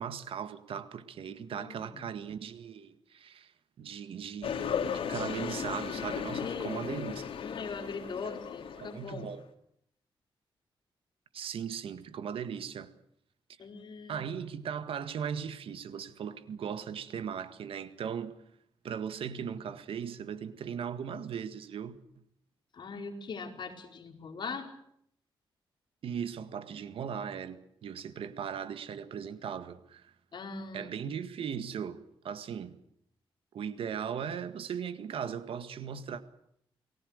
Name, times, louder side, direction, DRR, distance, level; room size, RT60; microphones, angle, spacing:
voice 1, 0.0-3.5 3.8-7.3 8.8-9.4 11.3-12.9 14.1-18.4 18.8-22.0 26.0-30.1 30.7-32.8 33.5-36.2, right 7 dB, 80° right, 1.9 m, -38 dB
voice 2, 1.4-2.0 6.4-7.0 7.4-9.3 13.6-14.2 22.7-24.7 30.3-30.9, left 4 dB, 55° left, 4.7 m, -41 dB
sound 1, 4.4-9.3, left 7 dB, 80° left, 2.9 m, -36 dB
29.5 x 20.0 x 6.7 m
cardioid pair, 110°, 9 cm